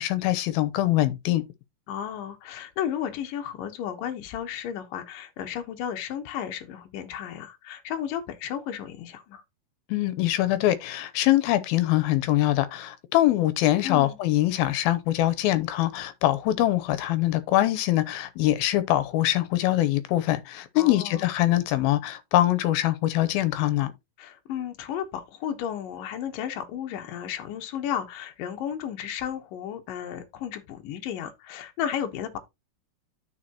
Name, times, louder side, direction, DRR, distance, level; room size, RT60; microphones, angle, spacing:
voice 1, 0.0-1.4 9.9-23.9, left 14 dB, 85° left, 2.6 m, -23 dB
voice 2, 1.9-9.4 13.8-14.2 20.8-21.3 24.2-32.4, left 9 dB, 70° left, 2.6 m, -33 dB
13.0 x 4.6 x 2.9 m
omnidirectional pair, 4.2 m